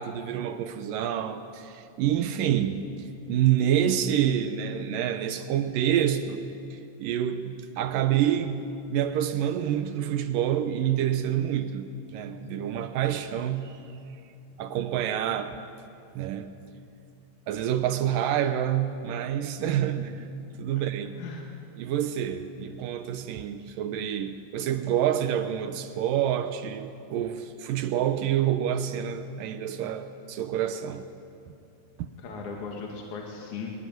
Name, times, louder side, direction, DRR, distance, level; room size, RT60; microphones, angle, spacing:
voice 1, 0.0-6.4 6.7-8.6 8.9-13.8 14.6-15.6 16.1-16.6 17.5-20.1 20.6-21.1 21.8-31.1 32.0-32.1, right 10 dB, 80° right, 2.5 m, -27 dB
voice 2, 21.2-21.5 32.2-33.7, left 5 dB, 60° left, 3.5 m, -38 dB
23.0 x 22.0 x 9.3 m
omnidirectional pair, 4.0 m